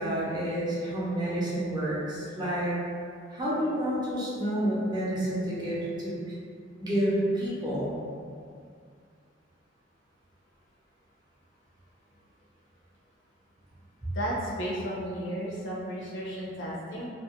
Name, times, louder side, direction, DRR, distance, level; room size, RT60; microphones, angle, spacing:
voice 1, 0.0-2.7 3.3-6.1 6.8-8.0 14.0-14.1, right 1 dB, 25° right, -8 dB, 0.6 m, -29 dB
voice 2, 14.1-17.1, equal, 75° left, -5 dB, 0.6 m, -33 dB
2.3 x 2.1 x 2.9 m, 2.2 s
head